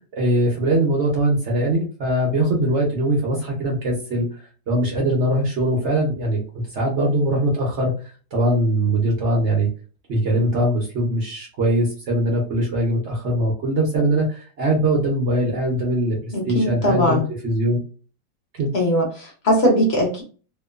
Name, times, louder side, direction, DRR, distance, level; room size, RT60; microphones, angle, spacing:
voice 1, 0.1-6.4 6.7-7.9 8.3-9.7 10.1-17.8 18.5-18.7, right 1 dB, 65° right, -1 dB, 0.7 m, -21 dB
voice 2, 16.3-17.2 18.7-20.2, equal, 50° left, -1 dB, 0.8 m, -20 dB
2.9 x 2.2 x 2.3 m, 0.37 s
omnidirectional pair, 2.0 m